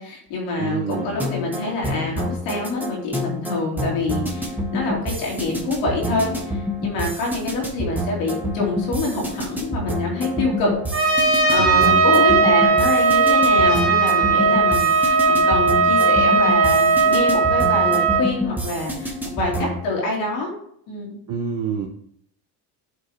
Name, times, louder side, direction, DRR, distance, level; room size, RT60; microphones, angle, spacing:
voice 1, 0.0-10.7 11.5-20.5 20.9-21.2, left 2 dB, 85° left, -3 dB, 3.1 m, -26 dB
voice 2, 0.6-1.2 11.6-12.0 21.3-21.9, right 6 dB, 65° right, 2 dB, 0.9 m, -27 dB
sound 1, 0.9-19.8, left 1 dB, 5° right, 1.5 m, -28 dB
Trumpet, 10.9-18.3, right 4 dB, 30° right, 1.7 m, -17 dB
11.0 x 4.2 x 3.0 m, 0.69 s
cardioid pair, 105°, 45 cm